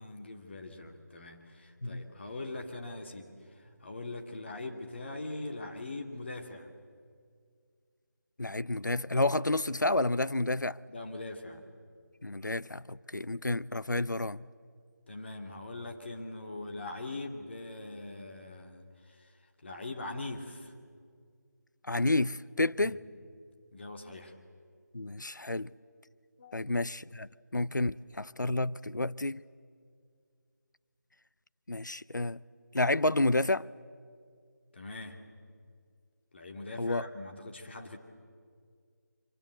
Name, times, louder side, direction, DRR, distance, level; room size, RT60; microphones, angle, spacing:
voice 1, 0.0-6.7 10.9-11.6 15.1-19.3 19.6-20.7 22.8-23.0 23.7-24.4 26.4-26.7 34.7-35.2 36.3-38.0, left 2 dB, 35° left, 2.3 m, -42 dB
voice 2, 8.4-10.8 12.2-14.4 21.9-22.9 24.9-25.7 26.5-29.4 31.7-32.4 32.7-33.7 36.8-37.0, left 2 dB, 80° left, 0.6 m, -30 dB
25.5 x 24.5 x 7.9 m
figure-of-eight pair, 160°, 10 cm